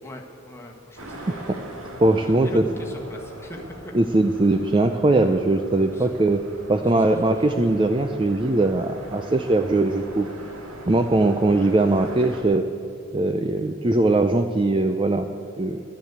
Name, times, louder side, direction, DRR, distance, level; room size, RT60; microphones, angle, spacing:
voice 1, 0.0-1.7 2.1-3.9 5.9-6.1 7.0-7.3 11.5-11.7, left 1 dB, 10° left, 0 dB, 1.4 m, -41 dB
sound 1, 0.9-12.4, right 1 dB, 90° right, 2.2 m, -41 dB
voice 2, 1.3-1.6 2.0-2.7 3.9-6.4 6.7-10.3 10.9-12.7 13.1-15.8, right 2 dB, 25° right, 7 dB, 0.4 m, -21 dB
12.0 x 10.0 x 8.0 m, 2.5 s
head